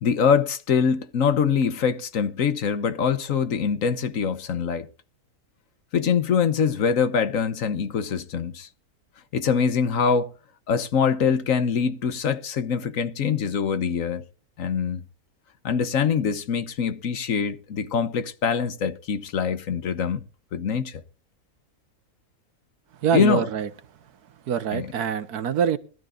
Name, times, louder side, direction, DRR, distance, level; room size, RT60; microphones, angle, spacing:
voice 1, 0.0-4.9 5.9-8.7 9.3-10.3 10.7-14.2 14.6-15.0 15.6-20.2 20.5-21.0 23.1-23.5 24.7-24.9, left 6 dB, 60° left, 1.3 m, -24 dB
voice 2, 23.0-23.7 24.5-25.8, right 8 dB, 85° right, 1.6 m, -24 dB
21.0 x 12.5 x 2.5 m
omnidirectional pair, 1.6 m